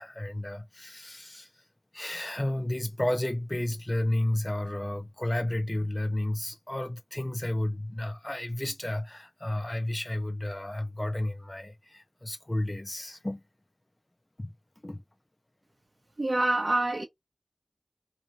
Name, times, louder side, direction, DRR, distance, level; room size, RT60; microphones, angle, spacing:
voice 1, 0.0-1.7 1.9-13.4 14.4-14.5 14.8-15.0, left 1 dB, 30° left, 0.3 m, -32 dB
voice 2, 16.2-17.0, right 2 dB, 55° right, 0.6 m, -26 dB
2.9 x 2.6 x 2.3 m
wide cardioid pair, 50°, 0 cm